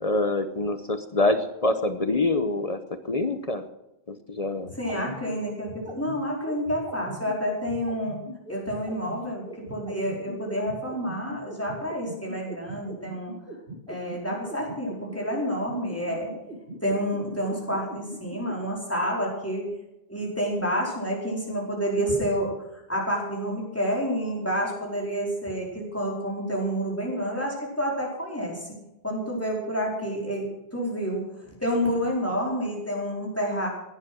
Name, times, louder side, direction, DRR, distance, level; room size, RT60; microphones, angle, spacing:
voice 1, 0.0-2.8 3.0-3.6 4.1-5.0, left 2 dB, 40° left, 9 dB, 0.9 m, -26 dB
sound 1, 4.6-18.6, right 1 dB, 55° right, 2.2 m, -40 dB
voice 2, 4.7-8.2 8.5-13.3 13.9-16.3 16.8-19.7 20.1-22.5 22.9-28.7 29.0-31.2 31.6-33.7, equal, 15° left, -3 dB, 4.6 m, -29 dB
16.5 x 10.5 x 6.2 m, 0.93 s
omnidirectional pair, 1.1 m